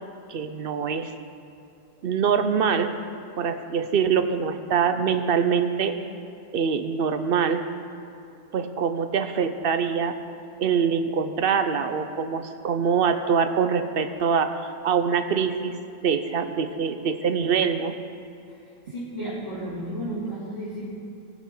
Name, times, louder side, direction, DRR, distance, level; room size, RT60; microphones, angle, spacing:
voice 1, 0.3-1.1 2.0-2.9 3.4-6.0 6.5-7.6 8.5-10.2 10.6-14.5 14.8-15.7 16.0-17.9, right 6 dB, 60° right, 9 dB, 0.7 m, -24 dB
voice 2, 18.9-20.8, right 1 dB, 40° left, -11 dB, 3.1 m, -32 dB
20.5 x 7.2 x 3.8 m, 2.6 s
omnidirectional pair, 1.4 m